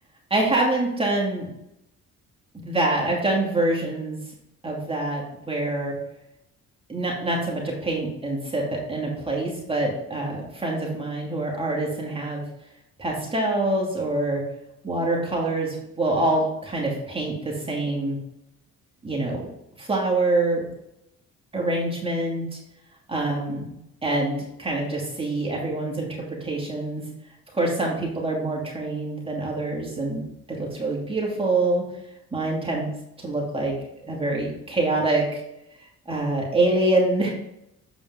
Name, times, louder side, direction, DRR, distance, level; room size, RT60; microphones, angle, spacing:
voice 1, 0.3-1.5 2.6-4.2 4.6-6.0 6.9-12.4 13.0-14.4 14.8-18.2 19.0-19.4 19.8-20.7 21.5-22.6 23.1-23.7 24.0-27.0 27.5-30.2 30.5-31.8 32.3-32.9 33.2-33.7 34.1-35.4 36.1-37.3, right 2 dB, 20° right, -3 dB, 2.6 m, -25 dB
7.8 x 4.9 x 3.9 m, 0.82 s
cardioid pair, 90°, 30 cm